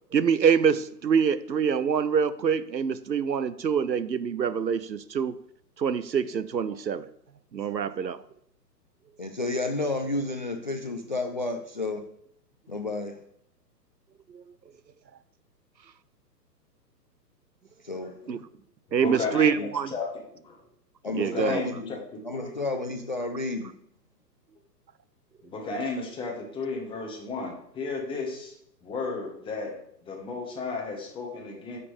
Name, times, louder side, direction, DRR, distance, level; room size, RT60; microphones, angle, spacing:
voice 1, 0.1-5.4 5.8-7.1 7.5-8.2 14.3-14.4 18.3-18.4 18.9-19.9 21.1-21.6, right 7 dB, 85° right, 15 dB, 0.7 m, -25 dB
voice 2, 9.2-12.0 12.7-13.2 17.8-18.4 19.6-19.7 21.0-22.0 22.2-23.7, left 2 dB, 30° left, 6 dB, 0.4 m, -31 dB
voice 3, 18.0-18.3 19.0-20.6 21.0-22.0 22.3-22.5 25.4-28.5 28.8-31.8, left 3 dB, 10° left, 0 dB, 1.3 m, -34 dB
9.0 x 6.8 x 3.5 m, 0.71 s
figure-of-eight pair, 120°, 50 cm